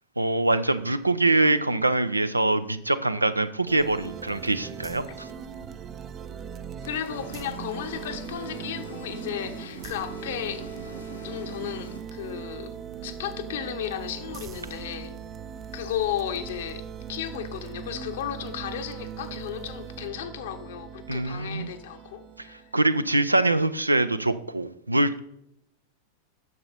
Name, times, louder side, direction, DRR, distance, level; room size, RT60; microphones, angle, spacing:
voice 1, 0.2-5.3 21.1-21.7 22.7-25.2, right 2 dB, 85° right, 0.5 m, -24 dB
sound 1, 3.7-22.9, right 7 dB, 30° right, 0.5 m, -40 dB
sound 2, 6.8-12.0, right 3 dB, 80° left, 1.8 m, -41 dB
voice 2, 6.8-10.7 11.2-12.7 13.0-15.1 15.7-16.8 17.1-22.7, left 10 dB, 55° left, 1.0 m, -34 dB
9.5 x 6.8 x 4.1 m
figure-of-eight pair, 90°, 0 cm